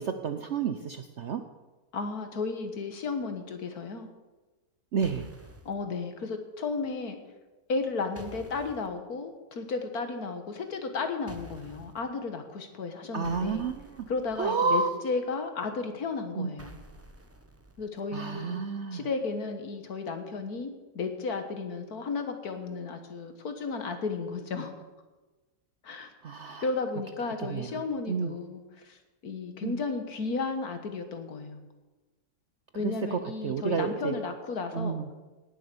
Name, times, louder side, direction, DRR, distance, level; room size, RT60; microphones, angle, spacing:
voice 1, 0.0-1.4 4.9-5.3 13.1-14.1 14.4-14.9 16.3-16.8 18.1-19.1 26.2-26.7 27.5-27.8 28.1-28.4 29.6-29.8 32.7-34.1 34.7-35.1, right 5 dB, 60° right, 8 dB, 0.8 m, -30 dB
voice 2, 1.9-4.1 5.7-7.2 7.7-13.7 14.1-16.8 17.8-18.6 18.9-24.7 25.8-26.1 26.6-29.0 29.2-31.6 32.7-35.0, left 4 dB, 60° left, 7 dB, 1.9 m, -34 dB
sound 1, 5.0-5.7 8.2-8.9 11.3-12.0 13.2-14.7 16.6-18.0, equal, 10° right, 0.7 m, -50 dB
18.0 x 7.6 x 7.0 m, 1.2 s
omnidirectional pair, 1.8 m